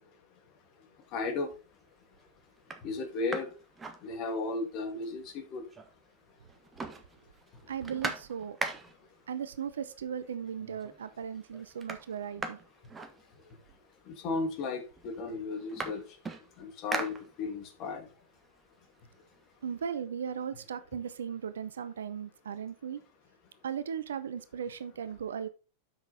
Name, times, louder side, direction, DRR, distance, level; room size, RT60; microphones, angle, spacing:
voice 1, 1.1-1.5 2.8-3.5 4.0-5.6 14.1-16.0 16.6-18.1, left 3 dB, 45° left, 5 dB, 2.3 m, -34 dB
sound 1, 1.2-1.6 2.1-2.2 2.6-4.7 5.0-5.1 5.3-6.2 6.4-9.2 10.1-10.2 10.6-11.1 11.3-13.8 14.6-14.7 15.0-17.8 18.2-19.9, right 3 dB, 20° right, 1.4 m, -41 dB
voice 2, 7.7-8.6 9.3-12.6 19.6-23.0 23.6-25.5, right 7 dB, 75° right, 14 dB, 0.7 m, -37 dB
7.7 x 6.1 x 4.1 m, 0.32 s
figure-of-eight pair, 95°, 0 cm